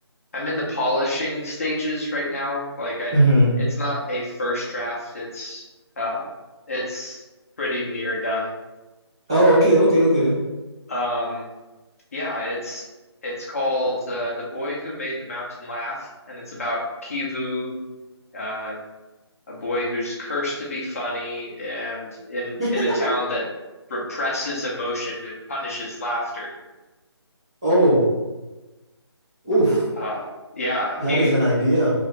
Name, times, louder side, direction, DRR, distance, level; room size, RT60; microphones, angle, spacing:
voice 1, 0.3-3.1 3.6-5.6 6.0-6.3 6.7-7.2 7.6-8.5 10.9-11.5 12.1-12.9 13.2-17.7 18.3-18.8 19.5-23.4 23.9-26.5 30.0-30.3 30.5-31.3, left 1 dB, 30° left, -4 dB, 0.6 m, -28 dB
voice 2, 3.1-3.5 9.3-10.3 22.6-22.7 27.6-28.0 29.4-29.8 31.0-31.9, right 1 dB, 10° right, -12 dB, 0.5 m, -17 dB
2.7 x 2.4 x 3.1 m, 1.1 s
figure-of-eight pair, 165°, 15 cm